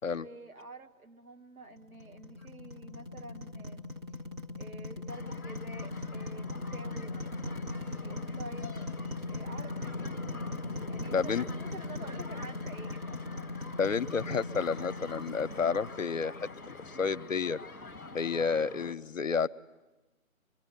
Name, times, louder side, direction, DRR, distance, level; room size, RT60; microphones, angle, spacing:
voice 1, 0.1-3.8 4.6-7.2 7.7-8.8 9.3-13.4, right 2 dB, 80° right, 4 dB, 1.9 m, -49 dB
sound 1, 1.8-16.9, left 3 dB, 20° right, 1.0 m, -39 dB
sound 2, 5.1-18.9, left 3 dB, 5° left, 0.8 m, -46 dB
voice 2, 11.1-11.4 13.8-16.3 16.7-17.6 18.1-19.5, left 5 dB, 65° left, 13 dB, 0.8 m, -30 dB
25.0 x 23.0 x 8.5 m, 1.1 s
figure-of-eight pair, 150°, 42 cm